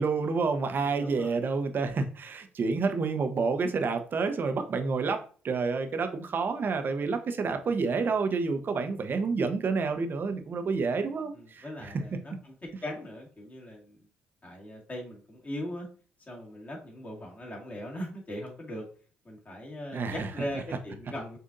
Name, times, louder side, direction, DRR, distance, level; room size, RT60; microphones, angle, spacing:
voice 1, 0.0-12.0 19.9-20.3, right 4 dB, 45° right, 7 dB, 0.7 m, -29 dB
voice 2, 0.8-1.4 11.3-12.5 12.8-14.0 14.4-15.9 16.3-18.8 19.2-21.4, left 1 dB, 35° left, -1 dB, 1.9 m, -39 dB
6.5 x 2.6 x 2.5 m, 0.40 s
hypercardioid pair, 55°, 5 cm